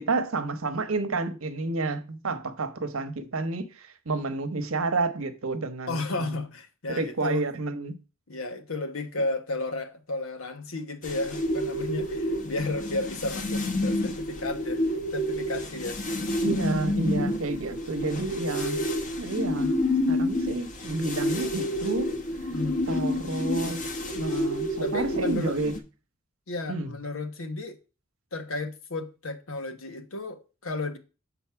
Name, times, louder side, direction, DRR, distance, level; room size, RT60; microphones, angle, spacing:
voice 1, 0.0-6.4 6.9-7.9 16.4-18.8 19.2-19.8 20.1-22.1 22.9-23.9 24.1-25.8 26.7-26.9, right 3 dB, 75° right, 1.0 m, -30 dB
voice 2, 5.9-7.5 8.3-14.8 15.1-16.0 22.5-22.9 24.8-25.5 26.5-27.8 28.3-31.0, left 2 dB, 75° left, 1.1 m, -33 dB
sound 1, 11.0-25.8, left 1 dB, 40° left, 1.0 m, -29 dB
7.1 x 4.1 x 5.7 m
head